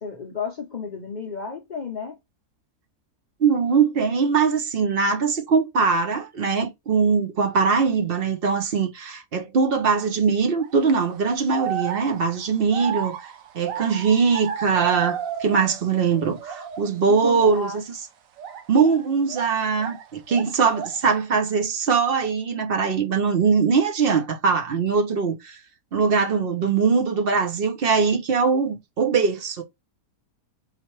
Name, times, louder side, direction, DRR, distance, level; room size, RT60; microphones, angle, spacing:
voice 1, 0.0-2.2 17.1-17.8, left 5 dB, 55° left, 0.5 m, -32 dB
voice 2, 3.4-13.3 13.5-17.8 18.7-25.6 25.9-29.6, right 5 dB, 45° right, 0.8 m, -21 dB
sound 1, 10.6-10.9 11.5-15.9 16.2-16.9 17.4-17.6 18.4-20.0 20.3-21.1, right 9 dB, 65° right, 1.1 m, -33 dB
4.1 x 3.9 x 3.1 m
omnidirectional pair, 1.7 m